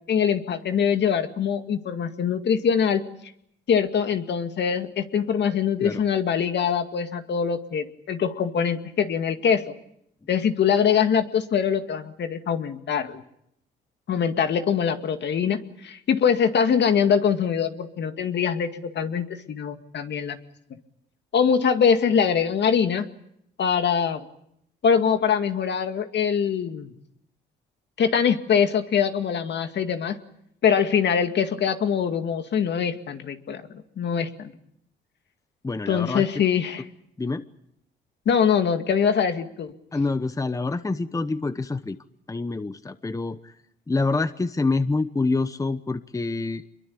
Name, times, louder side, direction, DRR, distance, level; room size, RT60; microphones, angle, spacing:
voice 1, 0.1-3.0 3.7-9.7 10.3-13.2 14.1-20.4 21.3-23.1 23.6-24.2 24.8-26.9 28.0-30.2 30.6-33.6 34.0-34.5 35.9-36.9 38.3-39.7, left 7 dB, 60° left, 8 dB, 2.2 m, -23 dB
voice 2, 35.6-36.2 37.2-37.4 39.9-42.0 42.3-43.4 43.9-46.7, left 3 dB, 15° left, 12 dB, 1.0 m, -26 dB
26.0 x 22.5 x 8.6 m, 0.75 s
cardioid pair, 90°, 20 cm